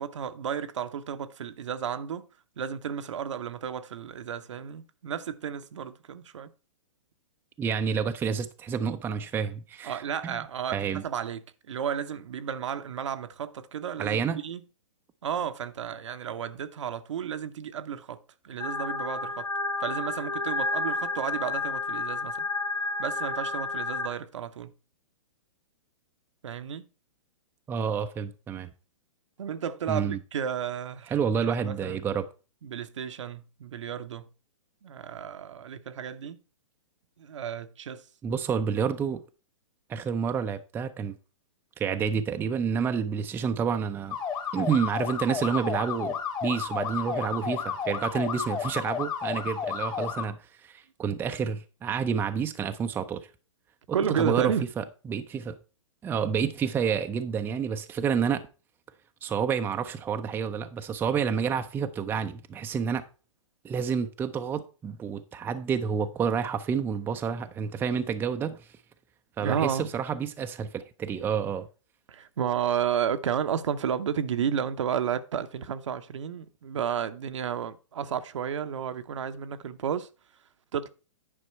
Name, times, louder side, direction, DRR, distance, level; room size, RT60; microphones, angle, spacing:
voice 1, 0.0-2.3 2.6-6.5 9.8-14.6 15.2-19.5 19.8-22.4 23.0-24.7 26.4-26.9 29.4-31.1 31.4-32.0 32.6-34.3 34.8-36.4 37.2-38.0 53.9-54.7 69.4-69.9 72.1-80.1 80.7-80.9, right 8 dB, 65° right, 0.8 m, -32 dB
voice 2, 7.6-10.4 10.7-11.0 14.0-14.4 27.7-28.7 29.9-30.2 31.1-32.2 38.2-39.2 39.9-41.1 41.8-44.2 44.5-46.1 46.4-50.4 50.6-53.2 53.9-55.6 56.0-58.4 59.2-63.0 63.6-68.7 69.4-71.7, right 6 dB, 10° right, 0.5 m, -29 dB
sound 1, 18.6-24.1, left 3 dB, 85° left, 2.3 m, -31 dB
sound 2, 44.1-50.3, left 7 dB, 25° left, 1.5 m, -32 dB
9.9 x 5.2 x 4.4 m
hypercardioid pair, 120°, 16 cm